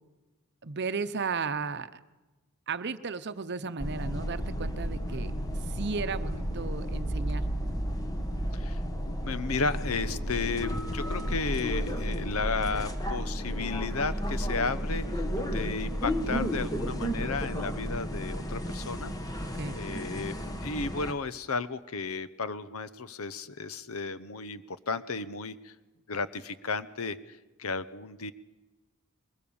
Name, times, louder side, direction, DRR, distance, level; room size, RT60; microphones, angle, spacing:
voice 1, 0.6-2.0 2.7-5.3 5.7-7.5 15.4-15.7 19.4-19.8, right 4 dB, 50° right, 12 dB, 0.8 m, -35 dB
sound 1, 3.8-21.1, equal, 15° left, 1.3 m, -32 dB
voice 2, 9.1-15.2 15.5-19.1 19.7-20.3 20.6-25.7 26.1-28.3, left 4 dB, 75° left, 14 dB, 0.9 m, -33 dB
22.5 x 20.5 x 7.1 m, 1.1 s
head